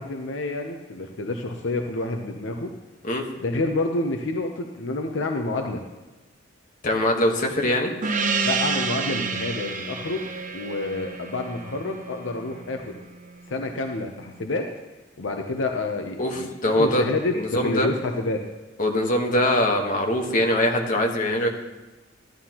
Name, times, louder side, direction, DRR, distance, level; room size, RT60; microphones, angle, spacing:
voice 1, 0.0-2.7 3.4-5.8 8.4-10.3 10.5-13.0 13.5-14.7 15.2-18.4, left 2 dB, 75° left, 3 dB, 0.7 m, -28 dB
voice 2, 6.8-7.9 16.2-17.0 17.3-17.9 18.8-21.5, left 1 dB, 45° left, 2 dB, 1.3 m, -22 dB
Gong, 8.0-13.0, right 4 dB, 45° right, 0.8 m, -29 dB
13.0 x 11.5 x 3.0 m, 1.1 s
head